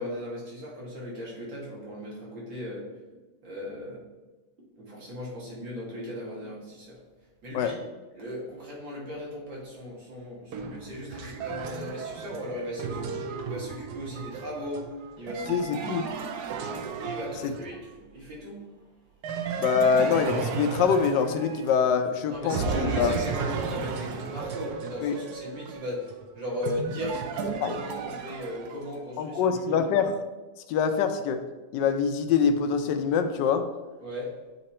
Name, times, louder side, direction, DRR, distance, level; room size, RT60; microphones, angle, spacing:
voice 1, 0.0-2.9 3.4-4.0 4.8-7.0 7.4-7.8 8.1-16.0 16.9-18.6 22.3-29.9 34.0-34.3, left 1 dB, 90° right, -5 dB, 2.6 m, -37 dB
sound 1, 10.5-17.9 19.2-22.1 22.5-29.0, right 5 dB, 70° right, 1.0 m, -34 dB
voice 2, 15.5-16.1 17.4-17.5 19.6-23.1 25.0-25.1 27.6-27.7 29.2-30.2 30.7-31.4 31.7-33.6, left 6 dB, 80° left, 7 dB, 1.2 m, -24 dB
8.5 x 2.9 x 4.2 m, 1.2 s
omnidirectional pair, 1.9 m